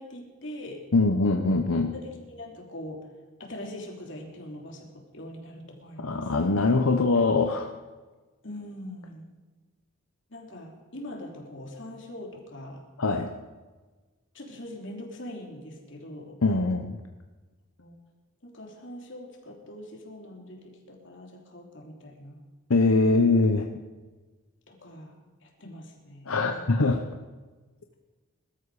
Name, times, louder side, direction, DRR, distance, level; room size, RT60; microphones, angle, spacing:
voice 1, 0.0-0.8 1.9-3.1 3.4-6.3 8.4-9.2 10.3-12.8 14.3-16.4 17.8-17.9 18.4-22.5 24.7-25.1 25.4-26.7, left 1 dB, 60° left, 1 dB, 3.2 m, -42 dB
voice 2, 0.9-1.9 6.0-7.7 13.0-13.3 16.4-17.0 22.7-23.7 26.3-27.0, left 3 dB, 90° left, 5 dB, 0.9 m, -23 dB
20.5 x 13.0 x 5.0 m, 1.3 s
head